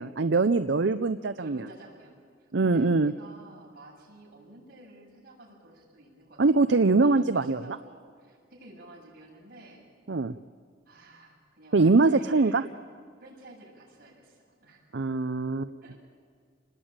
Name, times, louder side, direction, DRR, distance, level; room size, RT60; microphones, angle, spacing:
voice 1, 0.0-1.7 2.5-3.1 6.4-7.8 10.1-10.4 11.7-12.6 14.9-15.7, right 3 dB, 70° right, 11 dB, 0.6 m, -23 dB
voice 2, 1.4-9.9 10.9-12.7 13.2-14.9 15.8-16.0, right 1 dB, 50° right, -2 dB, 7.5 m, -51 dB
28.5 x 20.5 x 9.0 m, 2.1 s
head